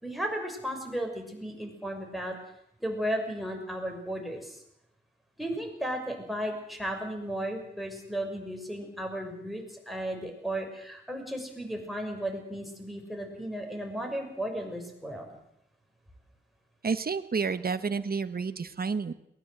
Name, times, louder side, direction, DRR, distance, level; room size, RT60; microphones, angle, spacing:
voice 1, 0.0-2.3 2.8-4.6 5.4-15.4, equal, ahead, 3 dB, 6.2 m, -35 dB
voice 2, 16.8-19.1, right 5 dB, 50° right, 11 dB, 1.2 m, -30 dB
22.0 x 19.5 x 7.9 m, 0.74 s
wide cardioid pair, 90°, 19 cm